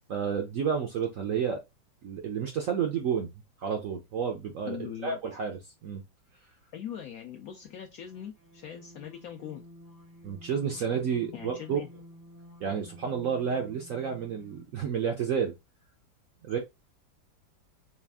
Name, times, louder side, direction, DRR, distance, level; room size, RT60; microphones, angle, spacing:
voice 1, 0.1-1.6 2.0-3.3 3.6-4.8 5.0-6.0 10.2-11.8 12.6-15.6 16.4-16.6, right 7 dB, 75° right, 0.7 m, -30 dB
voice 2, 4.7-5.2 6.7-9.7 11.3-11.9, left 9 dB, 80° left, 0.8 m, -41 dB
sound 1, 8.0-14.8, equal, 30° right, 0.3 m, -52 dB
4.3 x 2.4 x 3.4 m
omnidirectional pair, 2.0 m